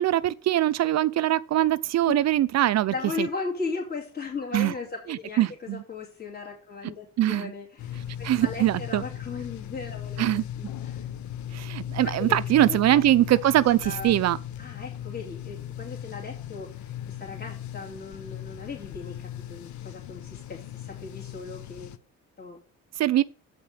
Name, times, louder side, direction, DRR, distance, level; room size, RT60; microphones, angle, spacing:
voice 1, 0.0-3.3 4.5-4.7 5.1-5.8 7.2-7.5 8.2-9.0 10.2-10.4 11.5-14.4 23.0-23.2, right 13 dB, 60° right, 0.5 m, -22 dB
voice 2, 2.9-11.1 12.0-13.0 13.3-13.4 13.8-14.1 14.6-21.9 22.4-22.6, left 4 dB, 30° left, 2.8 m, -37 dB
sound 1, 7.8-22.0, left 10 dB, 70° left, 0.7 m, -37 dB
7.6 x 5.6 x 5.1 m
cardioid pair, 90°, 30 cm